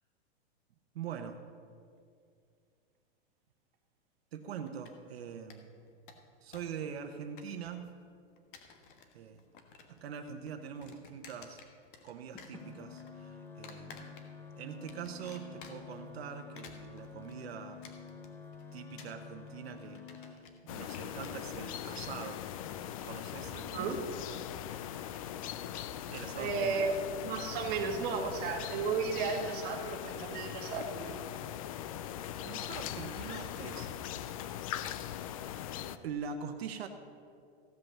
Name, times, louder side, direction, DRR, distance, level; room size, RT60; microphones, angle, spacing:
voice 1, 0.9-1.4 4.3-5.7 6.4-8.0 9.1-9.4 9.9-11.6 12.0-14.1 14.6-17.8 18.7-22.5 23.0-24.4 26.1-26.9 32.4-33.9 35.1-35.3 36.0-36.9, right 7 dB, 70° right, 6 dB, 1.0 m, -43 dB
sound 1, 4.7-5.2 5.5-5.6 5.9-6.8 7.0-7.9 8.4-9.1 9.4-10.0 10.3-12.1 12.4-13.1 13.6-14.5 14.9-16.0 16.4-23.1, left 6 dB, 50° left, 1.5 m, -54 dB
sound 2, 12.3-20.3, left 5 dB, 5° left, 0.7 m, -49 dB
sound 3, 20.7-36.0, left 10 dB, 35° left, 0.4 m, -40 dB
voice 2, 23.7-24.0 26.3-31.2, right 4 dB, 30° right, 1 dB, 1.5 m, -34 dB
15.5 x 5.6 x 7.4 m, 2.3 s
supercardioid pair, 155°, 32 cm